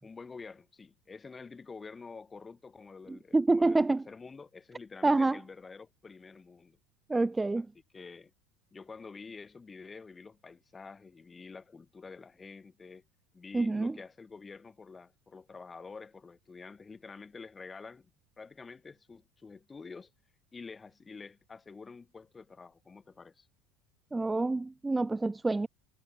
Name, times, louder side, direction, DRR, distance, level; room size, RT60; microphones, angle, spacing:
voice 1, 0.0-6.8 7.6-7.7 7.9-8.3 8.7-13.0 13.3-18.1 18.4-20.1 20.5-23.5, left 4 dB, 15° left, 5.4 m, -48 dB
voice 2, 3.1-4.0 5.0-5.4 7.1-7.7 13.5-14.0 24.1-25.7, right 3 dB, 10° right, 0.3 m, -27 dB
supercardioid pair, 125°, 0 cm